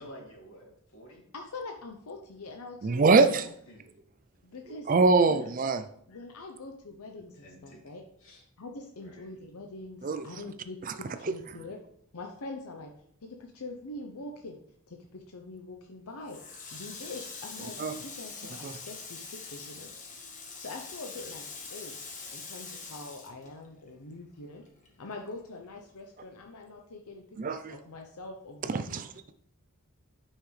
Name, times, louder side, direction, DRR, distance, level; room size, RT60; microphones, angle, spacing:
voice 1, 0.0-1.2 3.2-3.3 3.7-3.9 7.3-7.8 8.2-8.4 9.0-9.3 21.1-21.4, equal, 65° left, -2 dB, 2.8 m, -50 dB
voice 2, 1.3-3.5 4.4-4.9 5.2-5.4 6.1-8.0 8.6-11.8 12.1-12.9 13.2-14.6 14.9-19.9 20.6-21.4 21.7-22.0 22.3-24.7 25.0-29.0, left 2 dB, 85° left, 3 dB, 0.8 m, -44 dB
voice 3, 2.8-3.4 4.7-5.8 10.0-10.2 11.2-11.3 17.8-17.9 18.6-18.7 27.4-27.7 28.7-29.3, right 4 dB, 35° right, 10 dB, 0.4 m, -24 dB
Water tap faucet, 16.3-24.1 24.4-25.7, left 4 dB, 35° left, 1.3 m, -44 dB
9.7 x 5.8 x 3.3 m, 0.68 s
head